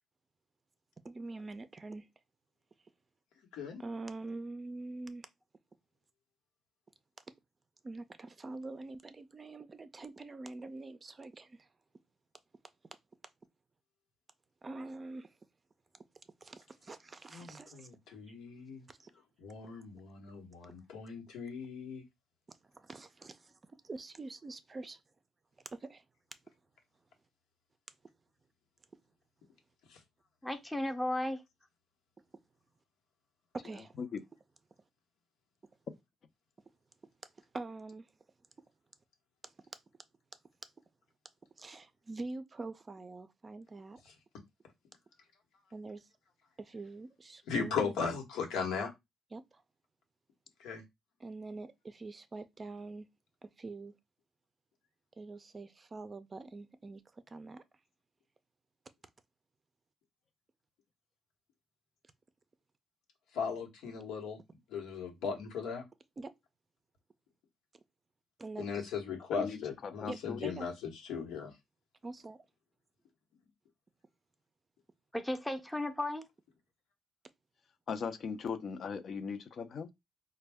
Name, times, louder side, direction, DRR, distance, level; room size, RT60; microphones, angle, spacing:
voice 1, 1.0-2.1 3.8-5.3 7.8-11.7 14.6-15.3 16.4-17.9 18.9-19.1 22.7-23.5 23.8-25.0 25.7-26.0 33.5-33.9 37.5-38.1 41.6-44.0 45.7-46.1 46.6-47.9 49.3-49.6 51.2-53.1 53.4-53.9 55.2-57.6 66.2-66.3 68.4-68.9 70.1-70.7 72.0-72.4, right 3 dB, 30° right, 0.4 m, -45 dB
voice 2, 3.5-3.8 17.3-18.8 19.4-22.0 29.9-30.0 47.5-48.9 50.6-50.8 63.3-64.4 64.7-65.8 68.6-70.7 71.1-71.5, left 5 dB, 90° left, 1.0 m, -37 dB
voice 3, 30.4-31.4 75.1-76.3, left 1 dB, 5° left, 0.6 m, -34 dB
voice 4, 69.3-70.5 77.9-79.9, left 6 dB, 55° left, 0.5 m, -39 dB
4.0 x 2.2 x 3.4 m
cardioid pair, 90°, 0 cm